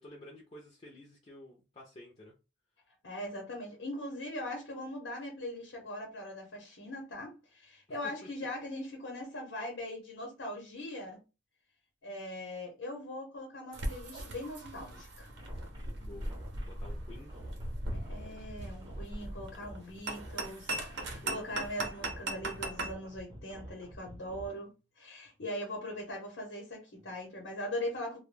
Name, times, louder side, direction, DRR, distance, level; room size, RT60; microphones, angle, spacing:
voice 1, 0.0-2.3 8.2-8.3 16.0-16.4 16.6-17.3 21.2-21.4, left 1 dB, 35° left, 0.5 m, -51 dB
voice 2, 3.0-11.2 12.0-15.3 17.9-24.7 25.0-28.2, left 1 dB, 90° left, 0.9 m, -41 dB
sound 1, 13.7-22.9, right 1 dB, 75° right, 0.7 m, -39 dB
sound 2, 15.2-24.5, equal, 25° right, 0.6 m, -49 dB
2.2 x 2.1 x 3.2 m
head